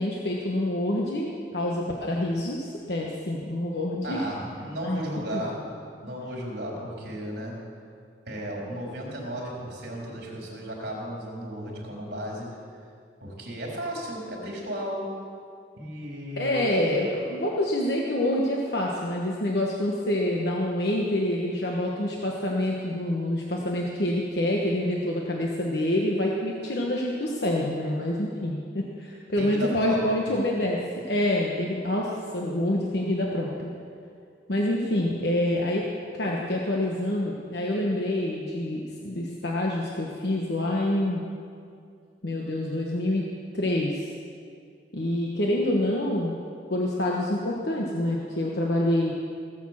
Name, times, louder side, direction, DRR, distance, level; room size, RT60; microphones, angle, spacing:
voice 1, 0.0-4.2 4.8-5.0 5.3-5.4 16.4-30.8 31.1-33.7 34.5-35.9 36.1-41.2 42.2-43.3 43.5-44.1 44.9-46.3 46.7-49.1, left 1 dB, 65° left, -2 dB, 1.2 m, -27 dB
voice 2, 4.0-5.7 6.0-7.5 8.3-12.6 13.2-15.1 15.8-16.6 29.4-30.2, equal, 60° right, -2 dB, 3.8 m, -34 dB
17.5 x 7.2 x 7.4 m, 2.4 s
head